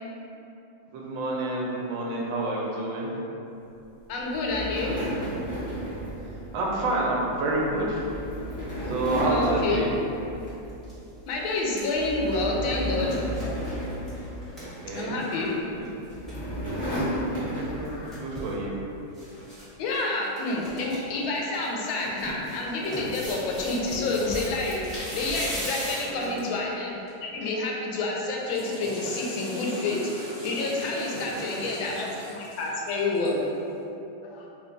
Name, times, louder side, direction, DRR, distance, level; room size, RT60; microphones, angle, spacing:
voice 1, 0.9-3.1 6.5-8.0 8.9-9.9 14.6-15.2 15.7-15.9 17.4-17.9 18.2-18.7 26.1-26.4 31.3-31.9, right 2 dB, 75° right, -3 dB, 1.3 m, -29 dB
voice 2, 4.1-5.0 9.2-9.8 11.3-13.3 14.9-15.5 17.7-18.2 19.8-33.5 34.2-34.4, left 2 dB, 85° left, -2 dB, 1.4 m, -29 dB
sound 1, 4.3-10.9 11.2-11.5 11.9-14.9 15.7-18.2, equal, 45° left, 1.2 m, -33 dB
sound 2, 10.8-10.9 11.3-15.5 15.8-15.9 16.1-16.4 17.6-18.6 19.1-19.7 19.9-20.0 20.4-21.0 21.4-26.6 27.1-27.2, equal, ahead, 0.9 m, -38 dB
Water / Toilet flush, 28.2-33.5, equal, 50° right, 0.5 m, -39 dB
3.4 x 2.2 x 3.8 m, 2.9 s
omnidirectional pair, 2.1 m